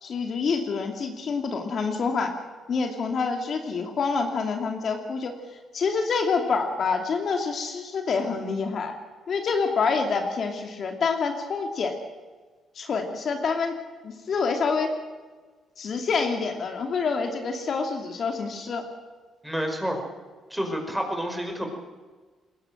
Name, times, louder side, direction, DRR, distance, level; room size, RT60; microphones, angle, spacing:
voice 1, 0.0-2.4 2.7-5.3 5.7-8.9 9.3-11.9 12.8-13.7 14.0-14.9 15.8-18.8, left 5 dB, 55° left, 4 dB, 2.7 m, -27 dB
voice 2, 19.4-20.0 20.5-21.7, equal, 5° right, 3 dB, 5.5 m, -29 dB
21.0 x 17.0 x 7.9 m, 1.4 s
cardioid pair, 90°, 0 cm